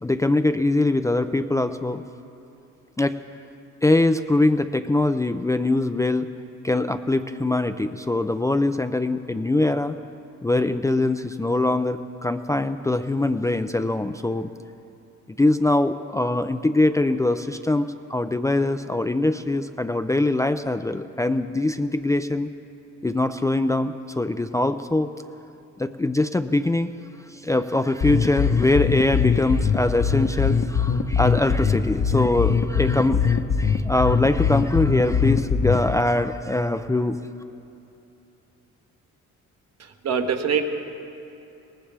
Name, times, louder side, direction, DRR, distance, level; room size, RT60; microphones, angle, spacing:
voice 1, 0.0-2.0 3.0-3.2 3.8-6.3 6.6-10.0 10.4-14.5 15.4-22.5 23.0-25.1 25.8-26.9 27.3-37.2, left 2 dB, 10° left, 8 dB, 0.4 m, -23 dB
sound 1, 28.0-36.0, left 6 dB, 45° left, 0.9 m, -22 dB
voice 2, 39.8-40.6, right 6 dB, 55° right, 4 dB, 1.3 m, -24 dB
20.0 x 18.5 x 3.4 m, 2.8 s
cardioid pair, 90°, 30 cm